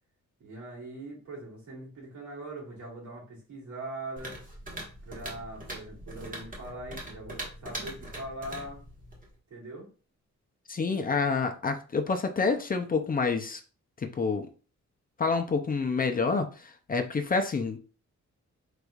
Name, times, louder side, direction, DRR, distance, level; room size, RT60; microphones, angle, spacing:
voice 1, 0.4-4.4 5.0-8.8 9.5-9.9, right 1 dB, 80° right, 2.5 m, -41 dB
sound 1, 4.2-9.3, right 1 dB, 30° right, 1.3 m, -42 dB
voice 2, 10.7-13.6 14.0-14.5 15.2-17.8, left 4 dB, 30° left, 0.5 m, -28 dB
4.9 x 4.0 x 2.3 m
wide cardioid pair, 165°, 29 cm